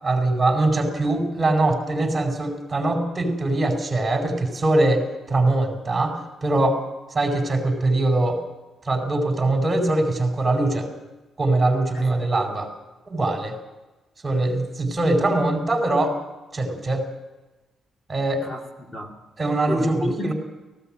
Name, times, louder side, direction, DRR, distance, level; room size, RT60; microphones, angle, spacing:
voice 1, 0.0-6.8 7.1-8.4 8.8-10.9 11.4-12.7 13.1-13.5 14.2-16.2 16.5-17.1 18.1-18.4 19.4-20.3, right 2 dB, 25° right, 4 dB, 5.1 m, -22 dB
voice 2, 11.9-12.4 18.4-19.2 19.7-20.3, left 1 dB, 25° left, 1 dB, 2.3 m, -31 dB
18.0 x 16.0 x 9.1 m, 1.1 s
cardioid pair, 110°, 0 cm